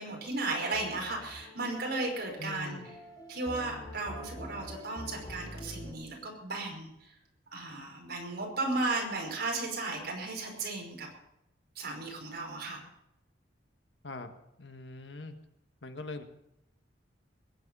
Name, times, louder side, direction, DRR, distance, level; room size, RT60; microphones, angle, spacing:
voice 1, 0.0-2.8 3.3-7.1 7.5-11.1 11.8-12.8, right 2 dB, 60° right, 0 dB, 5.4 m, -35 dB
sound 1, 0.7-5.9, left 1 dB, 20° left, 4.6 m, -46 dB
voice 2, 2.4-2.9 14.0-14.3 14.6-15.3 15.8-16.2, left 2 dB, 70° left, 7 dB, 1.6 m, -42 dB
21.5 x 9.7 x 5.6 m, 0.82 s
head